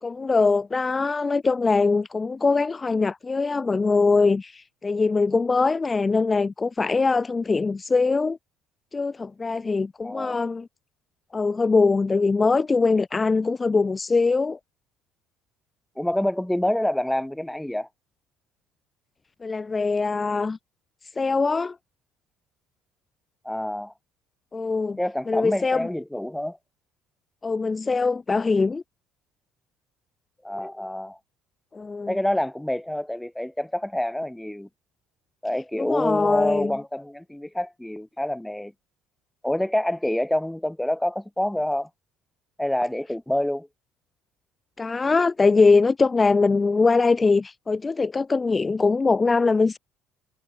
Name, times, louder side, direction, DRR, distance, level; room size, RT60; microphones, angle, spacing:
voice 1, 0.0-8.4 8.9-10.7 11.3-14.6 19.4-20.6 21.2-21.8 24.5-25.0 25.3-25.9 27.4-28.8 31.7-32.2 35.8-36.7 44.8-49.8, left 4 dB, 25° left, 1.3 m, -22 dB
voice 2, 10.0-10.4 16.0-17.9 23.4-23.9 25.0-26.6 30.4-31.2 32.1-34.7 35.4-38.7 39.4-41.9 42.6-43.7, left 1 dB, 5° left, 2.0 m, -27 dB
hypercardioid pair, 60°, 0 cm